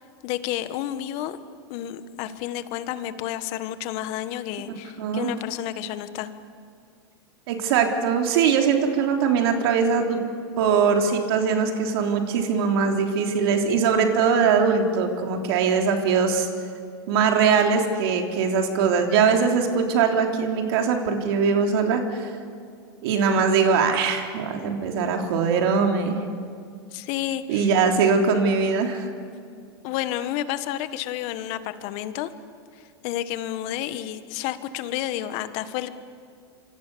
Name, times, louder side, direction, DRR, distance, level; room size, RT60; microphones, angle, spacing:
voice 1, 0.2-1.4 1.7-6.3 26.9-27.7 29.8-32.3 33.0-35.9, left 12 dB, 55° left, 11 dB, 1.7 m, -30 dB
voice 2, 5.0-5.3 7.5-10.2 10.6-16.5 17.1-22.3 23.0-26.2 27.5-29.1, right 6 dB, 65° right, 3 dB, 3.5 m, -21 dB
26.0 x 25.0 x 7.1 m, 2.3 s
hypercardioid pair, 105°, 14 cm